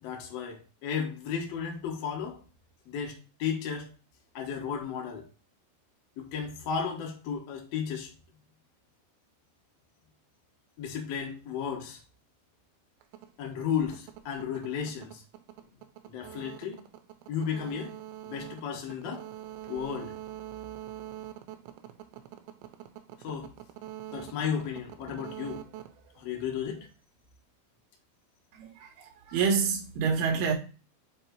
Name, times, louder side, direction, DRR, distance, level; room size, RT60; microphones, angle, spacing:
voice 1, 0.0-2.4 2.9-3.9 4.3-5.3 6.2-8.1 10.8-12.0 13.4-15.2 16.1-16.8 17.3-18.0 18.2-19.2 19.7-20.1 23.2-23.5 24.1-25.6 26.1-26.9, left 7 dB, 80° left, 1.4 m, -34 dB
sound 1, 13.0-26.9, right 13 dB, 85° right, 2.9 m, -45 dB
voice 2, 28.5-30.5, right 5 dB, 65° right, 2.8 m, -28 dB
7.5 x 2.8 x 4.5 m
omnidirectional pair, 5.0 m